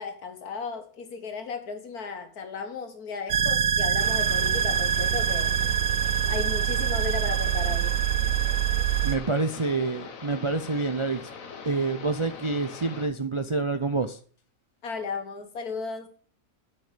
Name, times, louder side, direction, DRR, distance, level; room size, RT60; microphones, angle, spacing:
voice 1, 0.0-5.6 6.3-7.9 14.8-16.1, left 5 dB, 85° left, 2.0 m, -35 dB
sound 1, 3.3-9.1, right 9 dB, 85° right, 1.4 m, -24 dB
sound 2, 4.0-13.1, left 5 dB, 65° left, 1.5 m, -42 dB
voice 2, 9.0-11.2 11.6-14.2, right 3 dB, 45° right, 0.4 m, -27 dB
8.0 x 7.1 x 6.7 m
omnidirectional pair, 1.5 m